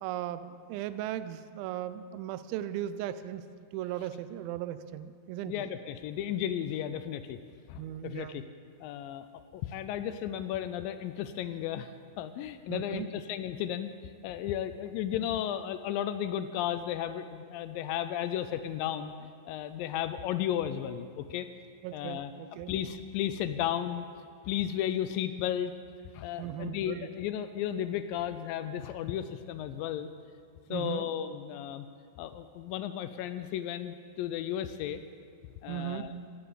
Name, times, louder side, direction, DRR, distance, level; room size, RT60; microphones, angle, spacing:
voice 1, 0.0-3.4 3.7-5.6 7.8-8.4 12.7-13.1 21.8-22.7 26.4-27.1 30.7-31.1 35.7-36.3, right 12 dB, 80° right, 12 dB, 2.3 m, -37 dB
voice 2, 5.5-7.4 7.7-8.4 8.8-9.3 9.5-11.9 12.2-19.1 19.5-21.5 21.9-22.3 22.7-24.1 24.4-25.7 26.1-30.1 30.7-31.9 32.2-35.0 35.6-36.1, left 10 dB, 80° left, 11 dB, 2.1 m, -34 dB
17.0 x 6.8 x 8.4 m, 2.2 s
omnidirectional pair, 4.4 m